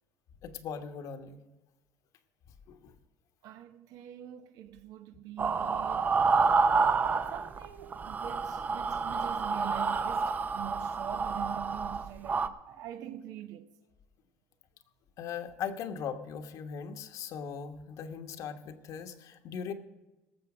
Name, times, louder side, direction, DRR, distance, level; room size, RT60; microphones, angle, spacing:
voice 1, 0.4-1.4 2.7-2.9 15.2-19.7, left 7 dB, 60° left, 1.3 m, -39 dB
voice 2, 3.4-6.2 7.3-13.7, right 12 dB, 70° right, 0.9 m, -44 dB
sound 1, 5.4-7.7 7.9-12.5, right 4 dB, 25° right, 0.6 m, -29 dB
18.0 x 7.0 x 6.1 m
cardioid pair, 115°, 6 cm